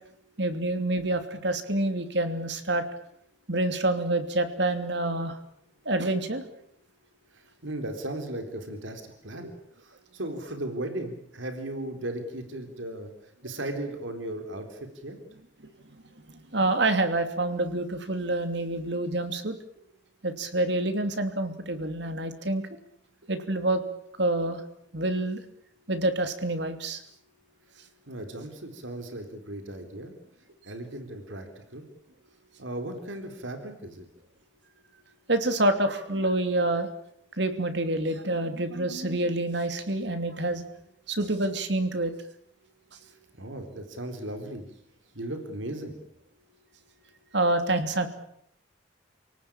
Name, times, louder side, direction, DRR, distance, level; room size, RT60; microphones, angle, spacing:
voice 1, 0.4-2.8 3.5-5.4 5.8-6.4 16.3-19.5 20.2-22.6 23.3-23.8 24.2-24.6 24.9-25.4 25.9-27.0 35.3-36.9 37.4-40.6 41.1-42.1 47.3-48.1, right 2 dB, 65° right, 8 dB, 2.8 m, -27 dB
voice 2, 7.3-9.5 9.8-15.2 27.7-30.1 30.6-31.8 32.6-34.0 43.1-44.7 45.1-46.0, right 1 dB, 85° right, 6 dB, 4.0 m, -37 dB
29.0 x 18.5 x 8.9 m, 0.72 s
head